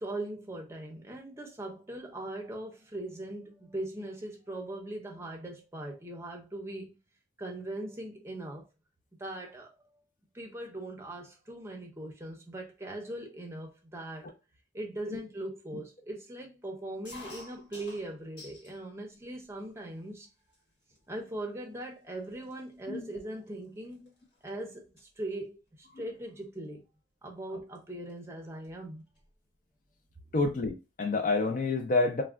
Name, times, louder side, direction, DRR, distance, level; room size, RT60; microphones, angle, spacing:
voice 1, 0.0-7.0 7.4-8.7 9.2-10.0 10.3-14.3 14.7-20.3 21.1-24.1 24.4-26.8 27.2-29.0, right 1 dB, 15° right, 0.5 m, -40 dB
sound 1, 17.0-18.8 19.2-19.9 20.5-20.6 20.9-21.3 21.9-22.0 22.2-24.5 24.8-25.1 26.4-26.6 27.7-27.8 28.1-28.2 28.5-29.3, left 2 dB, 85° left, 1.1 m, -51 dB
voice 2, 30.3-32.2, left 3 dB, 45° left, 0.4 m, -28 dB
3.5 x 2.1 x 2.3 m
head